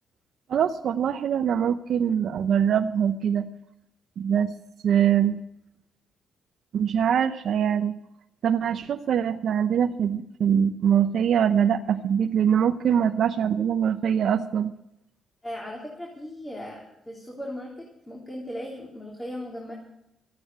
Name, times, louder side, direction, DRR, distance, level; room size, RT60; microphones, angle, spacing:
voice 1, 0.5-3.5 4.2-4.5 4.8-5.4 6.7-7.9 8.4-14.7, right 8 dB, 65° right, 7 dB, 0.6 m, -23 dB
voice 2, 15.4-19.7, left 1 dB, 20° left, -3 dB, 3.4 m, -37 dB
14.0 x 9.4 x 8.1 m, 0.83 s
cardioid pair, 85°, 0 cm